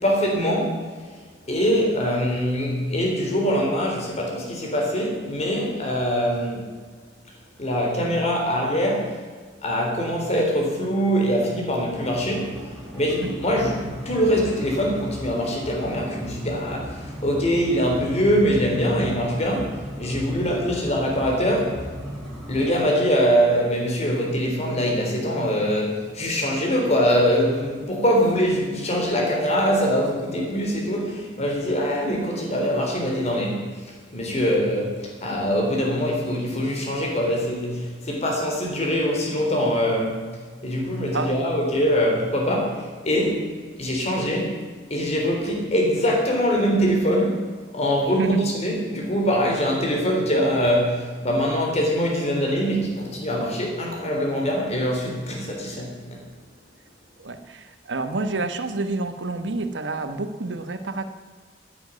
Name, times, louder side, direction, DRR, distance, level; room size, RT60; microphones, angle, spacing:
voice 1, 0.0-0.9 1.5-6.7 7.6-9.2 9.6-21.9 22.5-40.3 40.6-43.5 43.8-56.2, equal, 40° left, 0 dB, 3.8 m, -23 dB
sound 1, 11.8-22.8, equal, ahead, 5.3 m, -37 dB
voice 2, 48.1-48.4 57.2-61.0, right 2 dB, 80° right, 9 dB, 1.1 m, -28 dB
10.5 x 9.8 x 9.4 m, 1.5 s
head